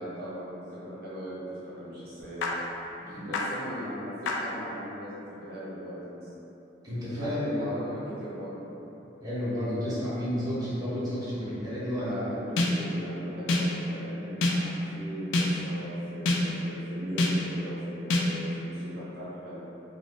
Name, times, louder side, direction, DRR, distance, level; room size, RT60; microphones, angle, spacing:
voice 1, 0.0-2.5 3.2-5.1 5.4-6.3 7.2-8.6 11.9-19.6, equal, 55° right, -10 dB, 0.7 m, -39 dB
sound 1, 2.4-2.5 3.3-3.4 4.2-4.3 12.6-13.0 13.5-13.9 14.4-14.8 15.3-15.8 16.2-16.7 17.2-17.6 18.1-18.5, left 2 dB, 85° left, 0.4 m, -26 dB
voice 2, 6.8-7.8 9.2-12.2, equal, 20° right, -12 dB, 0.8 m, -31 dB
2.6 x 2.4 x 3.3 m, 3.0 s
head